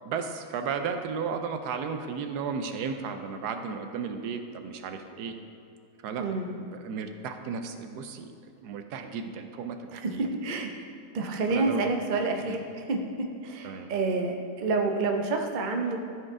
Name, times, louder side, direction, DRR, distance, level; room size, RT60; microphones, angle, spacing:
voice 1, 0.1-5.3 6.0-6.2 6.6-8.3 8.6-10.3 11.5-11.8 12.4-12.6 13.6-13.9, right 6 dB, 80° right, 7 dB, 1.1 m, -34 dB
voice 2, 6.2-6.5 10.0-10.7 11.1-16.0, right 3 dB, 50° right, 2 dB, 0.5 m, -29 dB
13.0 x 4.7 x 3.6 m, 2.5 s
omnidirectional pair, 1.7 m